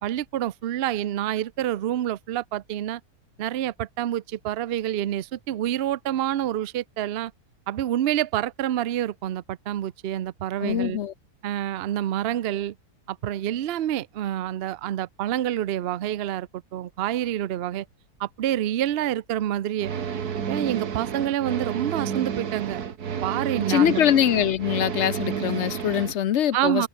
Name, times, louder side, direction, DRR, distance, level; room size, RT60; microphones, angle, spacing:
voice 1, 0.0-3.0 3.4-7.3 7.7-11.0 11.4-12.7 13.1-17.9 18.2-19.9 20.5-22.8 23.2-24.0 26.5-26.9, right 12 dB, 60° right, 0.7 m, -27 dB
voice 2, 10.6-11.1 23.7-26.9, left 10 dB, 60° left, 0.8 m, -23 dB
sound 1, 19.8-26.1, right 7 dB, 80° right, 2.0 m, -31 dB
omnidirectional pair, 1.6 m